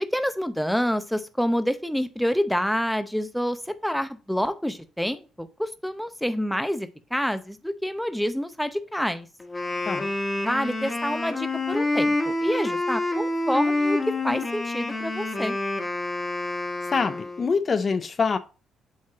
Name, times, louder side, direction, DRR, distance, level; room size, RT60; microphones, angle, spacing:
voice 1, 0.1-9.3 10.4-14.0 14.2-15.6, equal, ahead, 0.7 m, -27 dB
Wind instrument woodwind instrument, 9.4-17.6, left 2 dB, 20° left, 1.3 m, -27 dB
voice 2, 16.9-18.4, left 5 dB, 40° left, 0.5 m, -25 dB
7.5 x 2.9 x 4.7 m
cardioid pair, 90°, 0 cm